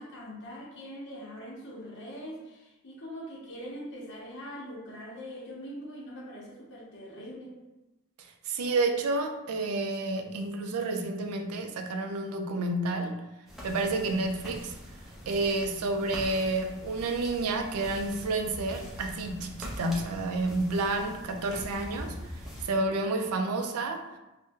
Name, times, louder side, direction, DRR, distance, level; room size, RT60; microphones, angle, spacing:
voice 1, 0.0-7.6, equal, 55° left, -5 dB, 0.9 m, -42 dB
voice 2, 8.5-13.1 13.6-14.7 15.3-22.2 22.6-24.0, right 2 dB, 85° right, 5 dB, 0.4 m, -30 dB
sound 1, 13.5-22.7, equal, ahead, 0.6 m, -43 dB
2.6 x 2.1 x 3.6 m, 0.99 s
head